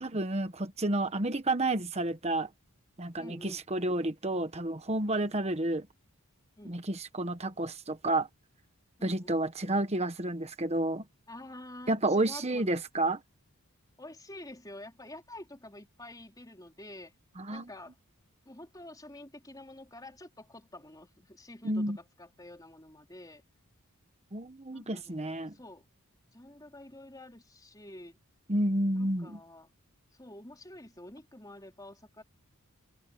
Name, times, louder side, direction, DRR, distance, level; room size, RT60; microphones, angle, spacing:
voice 1, 0.0-2.5 3.0-5.9 6.6-8.3 9.0-11.0 11.9-13.2 17.4-17.7 21.6-22.0 24.3-25.5 28.5-29.4, right 1 dB, 30° right, 1.3 m, -30 dB
voice 2, 3.2-3.7 5.2-5.4 6.6-6.7 9.0-9.4 11.3-12.7 14.0-17.1 17.5-18.0 18.5-23.4 24.7-25.8 26.3-28.2 28.9-29.7 30.2-32.2, left 1 dB, 15° left, 4.1 m, -48 dB
head